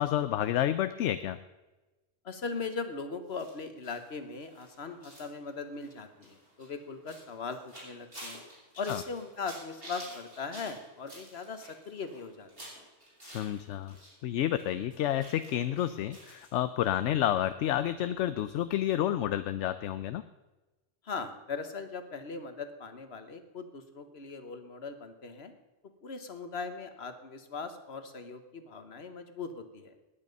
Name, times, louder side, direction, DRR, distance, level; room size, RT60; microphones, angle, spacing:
voice 1, 0.0-1.4 8.9-9.0 13.2-13.9 14.2-20.2, left 11 dB, 80° left, 12 dB, 0.9 m, -30 dB
voice 2, 2.2-8.4 8.8-12.7 21.0-25.5 26.0-29.9, left 4 dB, 60° left, 9 dB, 1.5 m, -39 dB
sound 1, 3.3-14.1 14.4-16.5 16.8-16.9 17.2-17.3, right 1 dB, 55° right, 6.0 m, -50 dB
19.5 x 8.9 x 5.3 m, 1.1 s
omnidirectional pair, 1.2 m